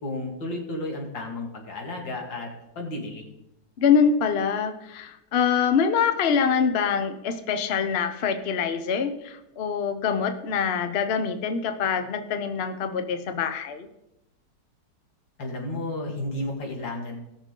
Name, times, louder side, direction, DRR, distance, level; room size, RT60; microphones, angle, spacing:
voice 1, 0.0-3.3 15.4-17.2, left 2 dB, 90° left, 1 dB, 2.7 m, -33 dB
voice 2, 3.8-13.9, left 6 dB, 50° left, 8 dB, 0.8 m, -24 dB
17.5 x 6.5 x 3.8 m, 0.86 s
omnidirectional pair, 2.0 m